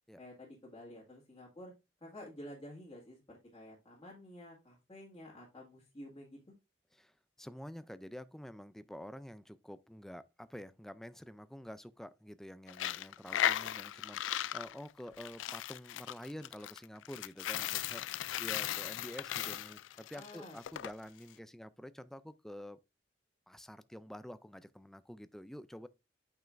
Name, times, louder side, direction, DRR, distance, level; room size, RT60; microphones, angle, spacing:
voice 1, 0.2-1.7 2.0-6.4 20.0-20.6, left 1 dB, 25° left, 2.0 m, -51 dB
voice 2, 7.0-22.8 23.5-25.9, equal, ahead, 0.4 m, -48 dB
Coin (dropping), 12.7-20.9, left 12 dB, 85° left, 0.3 m, -37 dB
8.9 x 5.5 x 2.5 m
head